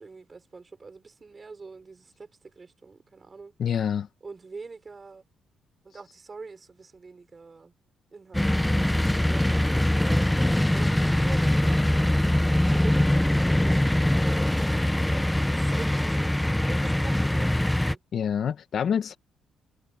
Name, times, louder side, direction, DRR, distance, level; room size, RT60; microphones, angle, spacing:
voice 1, 0.0-3.5 4.2-5.2 5.8-7.7 8.1-10.3 10.7-18.0, right 4 dB, 30° right, 5.9 m, -44 dB
voice 2, 3.6-4.1 18.1-19.2, left 8 dB, 60° left, 1.7 m, -26 dB
sound 1, 8.3-18.0, left 1 dB, 5° left, 0.8 m, -23 dB
cardioid pair, 90°, 0 cm